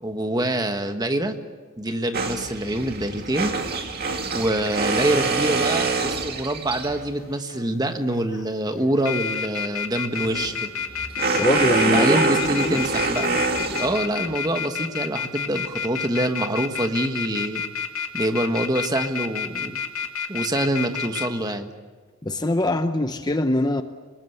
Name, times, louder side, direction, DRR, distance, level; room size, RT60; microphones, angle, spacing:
voice 1, 0.0-1.4 1.8-3.5 4.3-10.7 11.9-13.4 13.7-17.6 18.1-19.8 20.3-21.7, right 1 dB, 20° right, 7 dB, 1.5 m, -25 dB
sound 1, 2.1-7.1 10.1-14.3, right 3 dB, 45° right, 2.4 m, -25 dB
sound 2, 6.2-6.3 7.0-7.7 8.1-8.4 8.8-21.3, left 7 dB, 80° left, 2.0 m, -29 dB
voice 2, 11.3-12.8 22.2-23.8, left 1 dB, 20° left, 8 dB, 0.8 m, -23 dB
27.0 x 20.5 x 8.2 m, 1.4 s
head